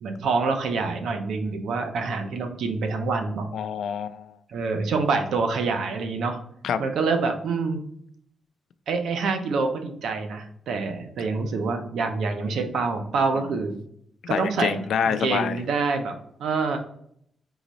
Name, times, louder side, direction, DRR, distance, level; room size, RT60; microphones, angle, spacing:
voice 1, 0.0-3.5 4.5-6.4 6.8-7.8 8.9-13.8 14.3-16.1 16.4-16.8, right 4 dB, 75° right, 5 dB, 0.7 m, -26 dB
voice 2, 3.5-4.3 6.6-6.8 13.3-13.5 14.3-15.6, left 7 dB, 75° left, 12 dB, 0.3 m, -26 dB
3.9 x 3.0 x 4.0 m, 0.69 s
cardioid pair, 125°, 0 cm